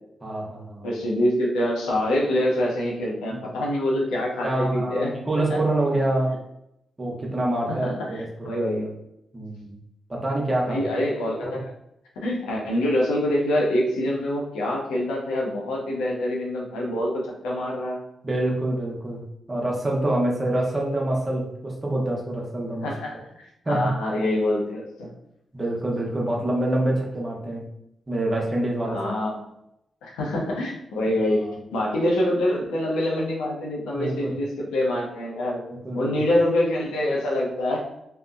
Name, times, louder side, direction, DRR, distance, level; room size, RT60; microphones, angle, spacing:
voice 1, 0.2-0.9 3.3-3.4 4.4-6.3 7.0-8.7 9.3-9.7 10.1-10.8 18.2-19.2 19.5-22.9 23.6-23.9 25.5-27.7 28.1-29.1 31.4-31.6 33.9-34.4 35.7-36.1, right 1 dB, 35° right, -2 dB, 0.9 m, -26 dB
voice 2, 0.8-5.1 5.5-5.6 7.7-8.2 8.4-8.9 10.7-11.7 12.2-18.0 22.8-25.1 28.8-29.4 30.0-31.5 31.7-35.6 35.9-37.8, left 1 dB, 85° left, -3 dB, 0.6 m, -25 dB
2.8 x 2.1 x 2.4 m, 0.80 s
supercardioid pair, 45°, 0 cm